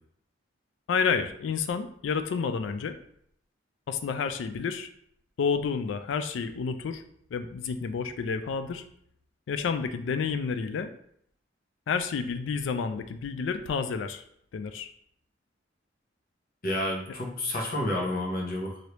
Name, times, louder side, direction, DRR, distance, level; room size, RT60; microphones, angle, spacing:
voice 1, 0.9-3.0 3.9-4.9 5.4-7.0 7.3-8.8 9.5-10.9 11.9-14.2 14.5-14.9, left 5 dB, 85° left, 10 dB, 0.3 m, -30 dB
voice 2, 16.6-18.8, left 1 dB, 50° left, -1 dB, 0.8 m, -30 dB
3.2 x 2.6 x 2.9 m, 0.68 s
head